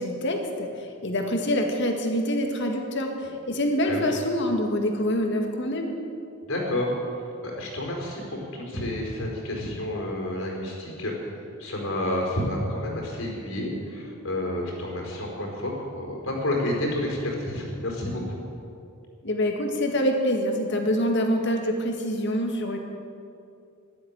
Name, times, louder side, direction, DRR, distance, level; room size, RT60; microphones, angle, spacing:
voice 1, 0.0-5.9 19.2-22.8, equal, 55° left, 3 dB, 2.0 m, -26 dB
voice 2, 6.4-11.1 11.6-18.4, left 1 dB, 70° left, 0 dB, 4.7 m, -30 dB
13.0 x 12.0 x 8.9 m, 2.5 s
head